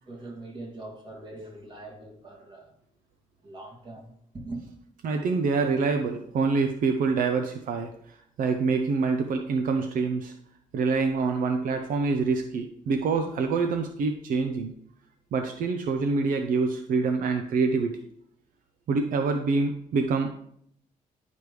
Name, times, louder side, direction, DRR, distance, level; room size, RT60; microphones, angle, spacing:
voice 1, 0.1-2.7 3.4-4.6, right 2 dB, 35° right, 2.4 m, -42 dB
voice 2, 5.0-7.9 8.4-10.3 10.7-14.7 15.3-18.0 18.9-20.3, right 4 dB, 70° right, 0.7 m, -26 dB
11.0 x 5.2 x 3.2 m
cardioid pair, 110°, 14 cm